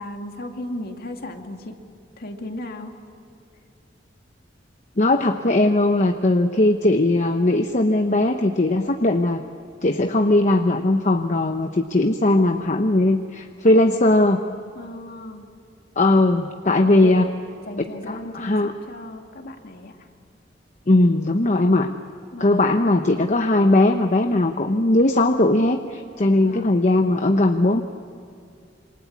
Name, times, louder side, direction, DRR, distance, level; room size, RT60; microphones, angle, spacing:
voice 1, 0.0-1.8 2.2-3.0 14.7-15.5 16.7-17.4 17.7-20.0 22.3-22.6 26.4-26.8, left 1 dB, 55° left, 4 dB, 2.4 m, -35 dB
voice 2, 5.0-9.4 9.8-14.4 16.0-17.2 18.1-18.7 20.9-21.9 22.4-27.8, left 2 dB, 40° left, 6 dB, 1.0 m, -19 dB
27.5 x 24.5 x 8.7 m, 2.5 s
head